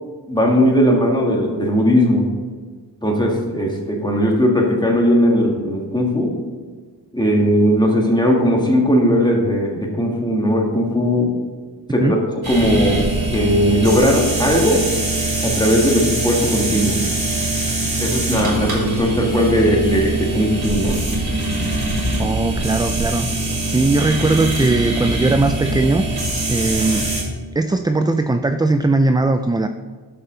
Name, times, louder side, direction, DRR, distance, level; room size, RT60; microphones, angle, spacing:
voice 1, 0.3-2.3 3.0-6.4 7.1-11.4 11.9-13.0 13.3-14.8 15.4-17.0 18.0-21.0, equal, 10° left, -1 dB, 1.8 m, -18 dB
sound 1, 12.4-27.2, right 2 dB, 60° right, 2.9 m, -22 dB
voice 2, 22.2-23.3 23.6-26.0 26.5-27.1 27.6-29.7, right 2 dB, 10° right, 8 dB, 0.3 m, -19 dB
12.5 x 5.6 x 3.9 m, 1.5 s
wide cardioid pair, 65°, 41 cm